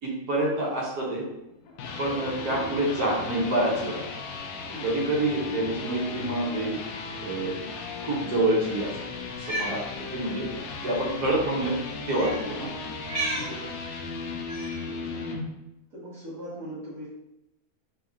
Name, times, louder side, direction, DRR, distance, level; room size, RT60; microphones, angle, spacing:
voice 1, 0.0-1.2 2.0-4.0 4.8-6.8 7.2-7.5 8.0-9.0 9.3-11.7 12.1-12.7, right 1 dB, 75° right, -3 dB, 1.6 m, -27 dB
sound 1, 1.5-15.4, left 4 dB, 70° left, 0.9 m, -36 dB
voice 2, 2.4-2.7 4.7-5.1 12.4-12.8 13.3-13.8 14.8-15.3 15.9-17.1, right 1 dB, 55° right, -11 dB, 1.7 m, -41 dB
Cat, 9.3-9.8 10.8-11.0 12.1-12.4 13.0-13.5 14.5-14.8, right 2 dB, 40° right, 1.0 m, -32 dB
3.5 x 2.9 x 3.6 m, 0.92 s
omnidirectional pair, 1.7 m